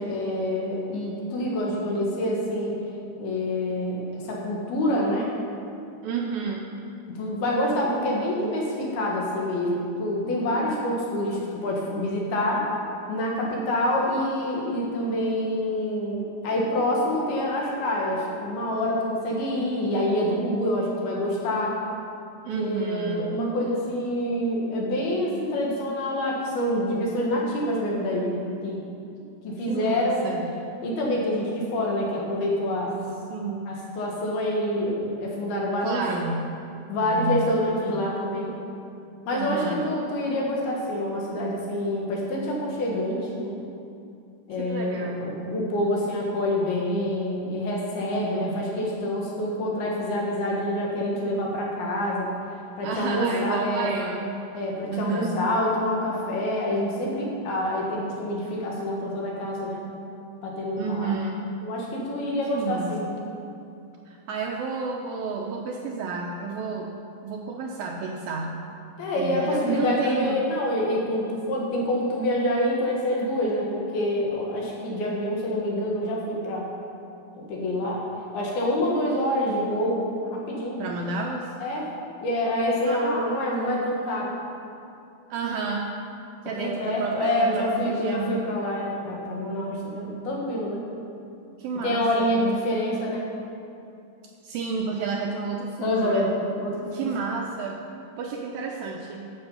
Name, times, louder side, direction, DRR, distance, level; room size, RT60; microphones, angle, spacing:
voice 1, 0.0-2.8 3.2-5.3 7.1-12.7 13.1-21.8 22.6-28.8 29.4-30.3 30.8-32.9 33.7-36.0 36.9-38.5 39.3-43.6 44.5-52.3 52.8-53.9 54.5-59.9 60.4-61.1 61.6-63.1 69.0-76.7 77.4-78.0 78.3-80.8 81.6-81.9 82.2-84.3 86.6-90.9 91.8-93.3 95.8-96.3 96.6-97.1, left 1 dB, 70° left, -3 dB, 3.4 m, -26 dB
voice 2, 6.0-6.7 22.4-23.3 29.7-30.5 33.3-33.8 35.8-36.6 37.1-37.5 39.3-39.8 44.6-45.3 48.1-48.6 52.8-54.4 54.9-55.5 60.8-61.5 62.5-63.1 64.1-66.9 67.2-68.5 69.1-70.4 80.8-81.5 82.8-83.8 85.3-85.9 86.5-88.5 91.6-92.3 94.4-96.3 96.9-97.9 98.2-99.3, right 4 dB, 80° right, 1 dB, 2.2 m, -31 dB
11.5 x 7.9 x 5.5 m, 2.6 s
omnidirectional pair, 4.8 m